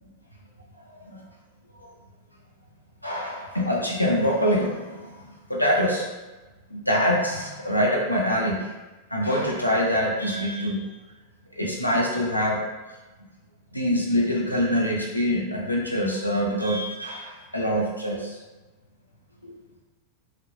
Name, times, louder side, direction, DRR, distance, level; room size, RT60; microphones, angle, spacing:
voice 1, 0.9-1.2 1.7-1.9 3.0-6.1 6.7-8.7 9.1-10.8 11.5-12.7 13.7-18.4 19.4-19.5, equal, 90° left, -3 dB, 0.4 m, -25 dB
2.8 x 2.0 x 2.2 m, 1.1 s
figure-of-eight pair, 90°, 0 cm